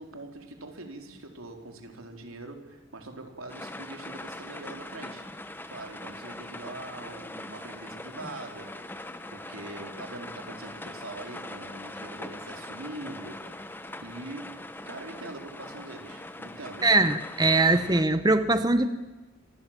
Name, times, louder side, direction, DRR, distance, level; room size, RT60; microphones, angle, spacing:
voice 1, 0.0-5.3 5.7-9.0 9.3-17.0, right 2 dB, 90° right, 4.1 m, -43 dB
sound 1, 3.5-18.0, left 1 dB, 10° left, 1.2 m, -41 dB
voice 2, 16.8-18.9, right 2 dB, 20° right, 0.9 m, -22 dB
27.5 x 24.5 x 7.5 m
head